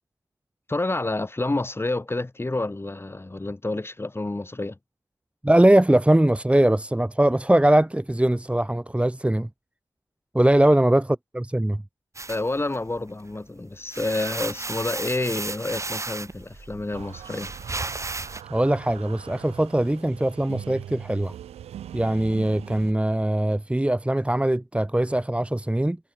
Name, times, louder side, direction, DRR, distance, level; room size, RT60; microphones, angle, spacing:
voice 1, 0.7-4.8 12.3-17.5, left 2 dB, 25° left, 3.6 m, -29 dB
voice 2, 5.4-9.5 10.3-11.8 18.5-21.4 21.9-26.0, right 1 dB, 10° right, 1.9 m, -21 dB
sound 1, 12.2-13.3 13.7-18.4, right 3 dB, 30° right, 2.0 m, -34 dB
sound 2, 16.9-22.9, right 10 dB, 80° right, 7.7 m, -41 dB
supercardioid pair, 45°, 11 cm